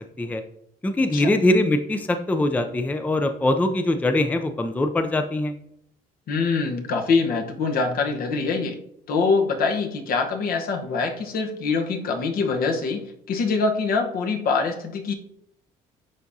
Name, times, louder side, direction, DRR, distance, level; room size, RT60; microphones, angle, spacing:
voice 1, 0.8-5.5, left 1 dB, 10° left, 7 dB, 0.4 m, -22 dB
voice 2, 6.3-8.8 9.1-15.1, left 4 dB, 60° left, 4 dB, 1.0 m, -24 dB
10.5 x 3.5 x 2.7 m, 0.72 s
cardioid pair, 110°, 17 cm